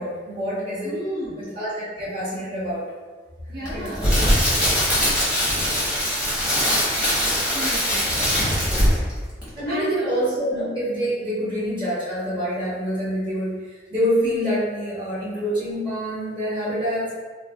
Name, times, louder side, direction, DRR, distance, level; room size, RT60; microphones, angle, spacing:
voice 1, 0.0-0.9 1.4-2.9 3.6-3.9 9.6-13.6 13.9-17.1, equal, 25° right, -10 dB, 1.2 m, -26 dB
voice 2, 0.8-1.4 2.0-2.1 3.5-4.2 7.3-8.0 9.7-10.1, equal, 55° right, -9 dB, 1.0 m, -33 dB
Crackle, 3.7-9.1 9.4-9.6, equal, 5° right, 0.9 m, -21 dB
2.4 x 2.2 x 3.4 m, 1.4 s
head